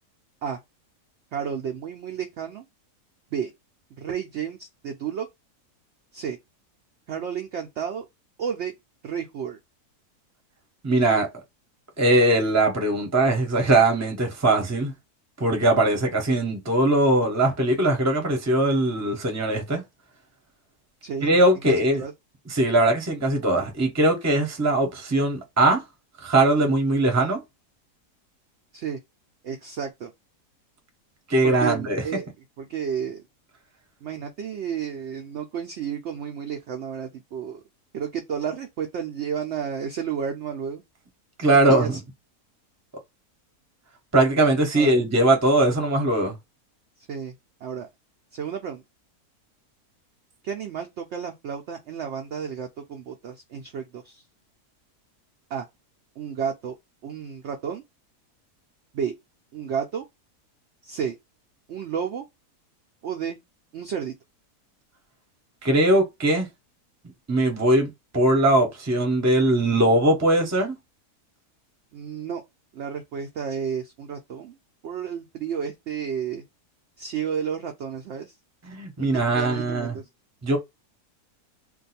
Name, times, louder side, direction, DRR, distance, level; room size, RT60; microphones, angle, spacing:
voice 1, 1.3-2.7 3.3-3.5 4.0-5.3 6.1-6.4 7.1-8.1 8.4-8.7 9.0-9.6 21.0-22.1 28.7-29.0 29.4-30.1 31.4-32.3 32.6-33.2 34.0-37.6 37.9-40.8 41.5-42.0 44.8-44.9 47.0-47.4 47.6-47.9 48.3-48.8 50.4-54.2 55.5-55.7 56.2-56.8 57.0-57.8 58.9-59.1 59.5-60.0 60.8-61.2 61.7-62.3 63.0-63.4 63.7-64.2 71.9-72.4 72.7-74.6 74.8-76.4 77.0-78.4 79.0-80.1, right 7 dB, 75° right, 0.6 m, -32 dB
voice 2, 10.8-11.3 12.0-14.9 15.4-19.8 21.2-22.0 22.5-25.8 26.2-27.4 31.3-32.0 41.4-42.0 44.1-46.4 65.6-66.5 67.3-70.8 78.7-79.9 80.4-80.6, right 1 dB, 15° right, 0.5 m, -20 dB
2.6 x 2.3 x 4.1 m
omnidirectional pair, 1.7 m